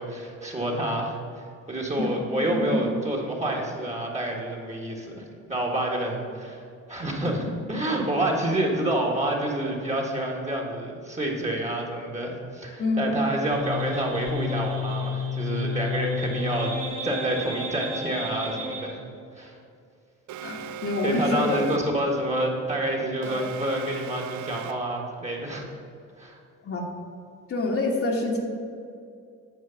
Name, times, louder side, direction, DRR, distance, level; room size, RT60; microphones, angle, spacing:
voice 1, 0.0-6.6 6.9-16.7 17.0-19.0 19.3-19.6 21.0-25.6 26.2-26.4, right 1 dB, 25° right, -1 dB, 1.7 m, -28 dB
voice 2, 2.4-2.8 12.8-13.1 20.4-21.6 23.2-23.4 26.6-26.9 27.5-28.4, left 2 dB, 50° left, -1 dB, 1.6 m, -27 dB
sound 1, 13.5-18.9, left 3 dB, 55° right, 2.3 m, -31 dB
Alarm, 20.3-22.0 23.2-25.0, right 7 dB, 70° right, 0.5 m, -39 dB
9.7 x 4.6 x 7.0 m, 2.4 s
cardioid pair, 90°, 30 cm